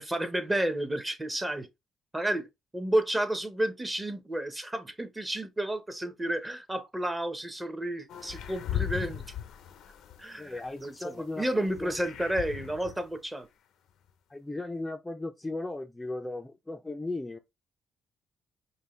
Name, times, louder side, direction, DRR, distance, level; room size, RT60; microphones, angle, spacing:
voice 1, 0.0-1.7 2.1-2.5 2.7-9.2 10.2-13.5, right 1 dB, 15° right, 1.0 m, -31 dB
sound 1, 8.1-10.8 11.2-13.0, left 10 dB, 80° left, 0.6 m, -37 dB
voice 2, 10.4-11.9 14.3-17.4, left 2 dB, 15° left, 0.5 m, -37 dB
5.4 x 2.3 x 3.1 m
cardioid pair, 90°, 0 cm